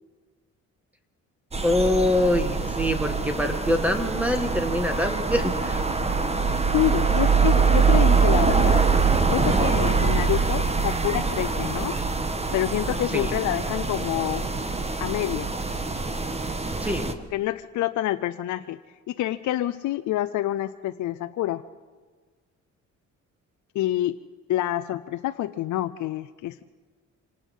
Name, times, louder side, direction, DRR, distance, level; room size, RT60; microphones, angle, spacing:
sound 1, 1.5-17.1, right 4 dB, 20° right, 1.5 m, -24 dB
voice 1, 1.6-5.8 6.2-6.4 13.1-13.3 16.8-17.1, left 1 dB, 5° right, 6 dB, 2.0 m, -25 dB
voice 2, 6.7-8.8 9.3-12.0 12.5-14.5 15.0-15.5 17.3-18.8 19.1-21.6 23.7-24.2 24.5-26.6, left 14 dB, 75° left, 10 dB, 0.6 m, -27 dB
26.5 x 18.5 x 5.5 m, 1.4 s
cardioid pair, 90°, 30 cm